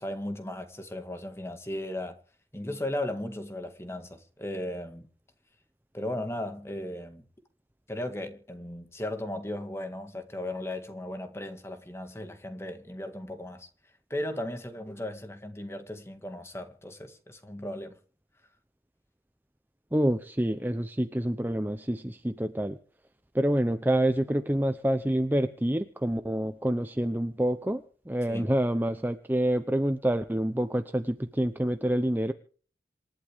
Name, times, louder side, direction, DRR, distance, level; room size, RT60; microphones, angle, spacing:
voice 1, 0.0-2.2 2.5-5.1 5.9-7.2 7.9-13.7 14.1-18.0 28.3-28.5, left 1 dB, 15° left, 1.9 m, -36 dB
voice 2, 19.9-22.8 23.3-32.3, right 1 dB, 10° right, 0.7 m, -27 dB
27.0 x 12.0 x 3.6 m
head